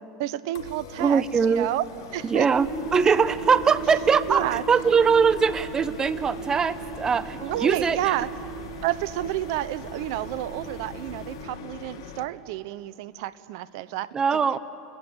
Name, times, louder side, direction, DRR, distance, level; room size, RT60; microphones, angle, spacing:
voice 1, 0.2-1.8 2.1-2.5 4.3-4.6 7.4-8.3 8.8-14.6, right 15 dB, 70° right, 16 dB, 1.0 m, -30 dB
sound 1, 0.5-12.2, left 8 dB, 80° left, 1.8 m, -44 dB
voice 2, 1.0-1.7 2.3-4.4 4.7-8.0 14.1-14.6, right 6 dB, 25° right, 15 dB, 0.9 m, -21 dB
sound 2, 2.5-11.4, right 4 dB, 5° right, 7.6 m, -37 dB
29.0 x 19.0 x 8.2 m, 2.6 s
hypercardioid pair, 90°, 2 cm